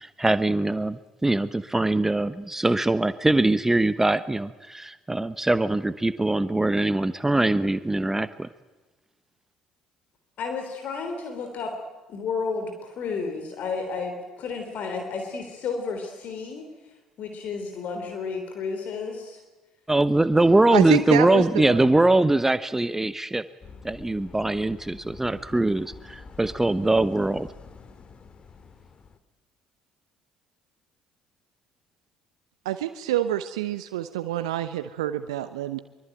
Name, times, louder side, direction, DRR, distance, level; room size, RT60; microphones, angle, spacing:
voice 1, 0.0-8.5 19.9-23.4 23.8-27.5, right 2 dB, 10° right, 14 dB, 1.0 m, -22 dB
voice 2, 10.4-11.8 12.1-16.9 17.2-19.4 20.8-20.9, left 4 dB, 50° left, 5 dB, 3.5 m, -32 dB
voice 3, 20.7-21.9 32.6-35.8, right 12 dB, 75° right, 11 dB, 0.8 m, -27 dB
sound 1, 23.6-29.2, left 5 dB, 35° left, 2.3 m, -47 dB
24.0 x 23.5 x 9.1 m, 1.2 s
figure-of-eight pair, 55°, 3 cm